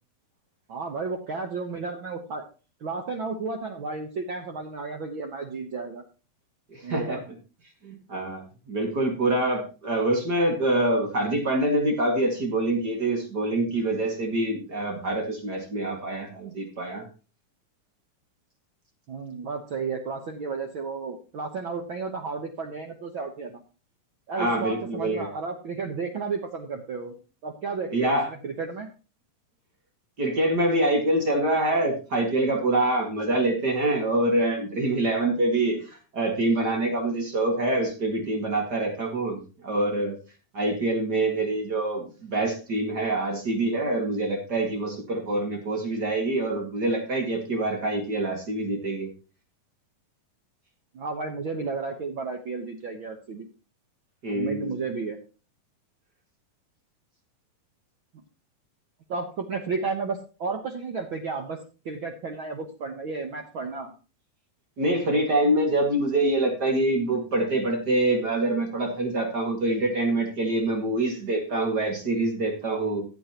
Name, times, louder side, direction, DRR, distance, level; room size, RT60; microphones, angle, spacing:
voice 1, 0.7-2.4 2.8-6.0 6.8-7.2 19.1-23.5 24.3-27.2 27.4-28.9 50.9-53.4 54.3-55.2 59.1-63.9, right 4 dB, 80° right, 3 dB, 1.1 m, -33 dB
voice 2, 6.7-7.3 7.8-17.1 24.4-25.3 27.9-28.3 30.2-39.4 39.6-40.2 40.5-49.1 54.2-54.7 64.8-73.0, right 2 dB, 35° right, 2 dB, 2.0 m, -25 dB
15.5 x 8.3 x 2.9 m, 0.34 s
omnidirectional pair, 4.0 m